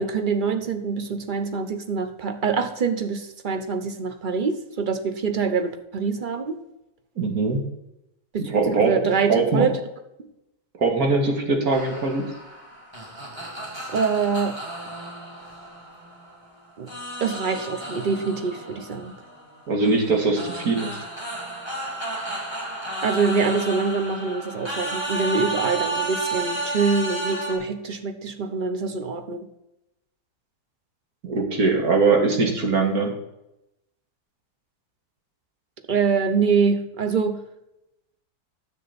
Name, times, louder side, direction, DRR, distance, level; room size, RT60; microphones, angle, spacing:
voice 1, 0.0-6.6 8.3-8.5 8.8-9.8 13.9-14.6 16.8-16.9 17.2-19.1 23.0-29.5 35.9-37.4, right 5 dB, 40° right, 8 dB, 0.9 m, -25 dB
voice 2, 7.2-7.6 8.4-8.9 9.3-9.7 10.8-12.2 19.7-21.0 31.2-33.1, right 3 dB, 70° right, 2 dB, 2.3 m, -21 dB
sound 1, 11.7-16.4 16.9-27.6, right 2 dB, 15° right, 2.4 m, -32 dB
9.9 x 7.6 x 4.2 m, 0.87 s
omnidirectional pair, 1.7 m